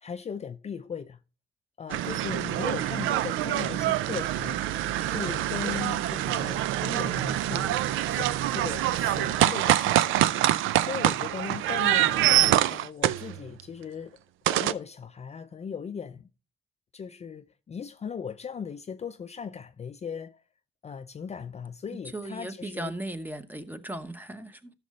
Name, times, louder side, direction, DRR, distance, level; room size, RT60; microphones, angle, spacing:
voice 1, 0.0-1.2 1.8-4.6 5.0-10.2 10.8-12.3 12.7-14.2 14.5-16.3 16.9-20.4 20.8-22.9, left 7 dB, 35° left, 0.5 m, -38 dB
sound 1, 1.9-13.6 14.5-14.7, right 13 dB, 85° right, 0.5 m, -25 dB
voice 2, 22.1-24.7, right 1 dB, 10° right, 1.0 m, -37 dB
12.5 x 6.5 x 3.2 m
cardioid pair, 90°, 20 cm